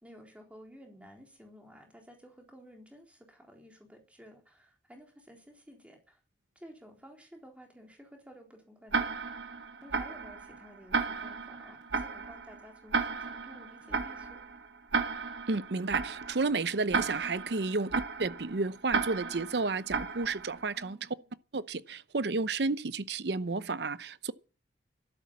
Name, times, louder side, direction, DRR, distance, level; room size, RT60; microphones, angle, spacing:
voice 1, 0.0-6.2 6.6-9.2 9.8-14.4 20.7-21.3, equal, 10° right, 3.8 m, -53 dB
Tick-tock, 8.9-20.8, right 5 dB, 80° right, 1.6 m, -34 dB
voice 2, 15.5-21.0 21.5-24.3, right 3 dB, 65° right, 0.7 m, -32 dB
12.5 x 11.0 x 7.5 m
head